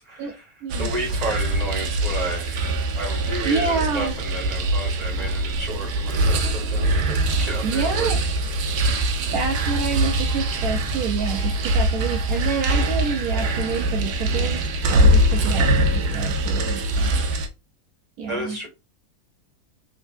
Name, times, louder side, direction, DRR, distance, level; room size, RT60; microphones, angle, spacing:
voice 1, 0.0-8.3 8.6-8.9 18.3-18.7, right 1 dB, 25° right, 1.8 m, -32 dB
sound 1, 0.7-17.5, right 1 dB, 85° right, 1.3 m, -23 dB
voice 2, 3.4-4.1 7.6-8.2 9.3-14.6 14.9-17.1 18.2-18.6, right 5 dB, 70° right, 1.0 m, -28 dB
3.7 x 3.3 x 2.5 m
omnidirectional pair, 1.7 m